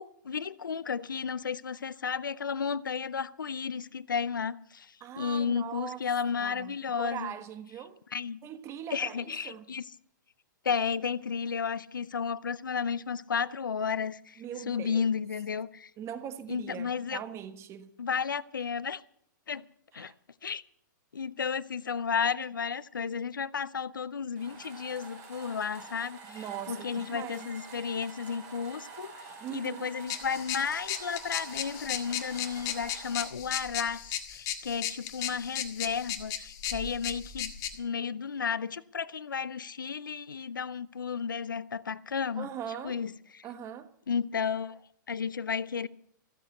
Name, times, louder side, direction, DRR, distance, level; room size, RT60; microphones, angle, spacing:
voice 1, 0.0-7.3 8.1-8.4 8.9-9.8 10.6-15.9 16.5-17.2 18.0-19.0 19.5-19.6 19.9-20.1 20.4-20.6 21.1-29.2 29.5-42.5 42.8-43.4 44.1-44.8 45.1-45.9, left 6 dB, 80° left, 0.6 m, -33 dB
voice 2, 5.0-6.0 6.3-8.0 8.4-9.7 14.4-15.1 16.0-17.9 19.9-20.1 26.2-27.5 29.4-29.9 42.4-43.0 43.4-43.9, right 9 dB, 25° right, 1.3 m, -41 dB
sound 1, 24.4-33.3, right 4 dB, 45° right, 5.5 m, -47 dB
sound 2, 30.1-37.8, left 10 dB, 35° left, 1.9 m, -36 dB
15.0 x 8.2 x 8.2 m
hypercardioid pair, 115°, 11 cm